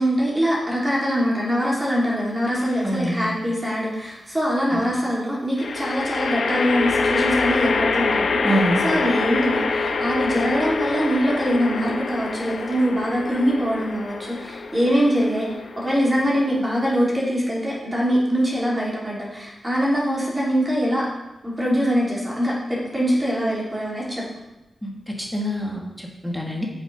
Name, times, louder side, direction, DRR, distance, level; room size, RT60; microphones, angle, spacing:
voice 1, 0.0-15.5 15.8-21.1 21.4-24.2, equal, 15° right, -5 dB, 3.1 m, -23 dB
sound 1, 2.5-3.1 5.6-16.9, left 4 dB, 70° left, 0.8 m, -26 dB
voice 2, 2.8-3.3 4.7-4.8 8.4-8.8 24.8-26.7, right 1 dB, ahead, -1 dB, 1.6 m, -26 dB
7.2 x 6.8 x 5.2 m, 1.0 s
wide cardioid pair, 90°, 0 cm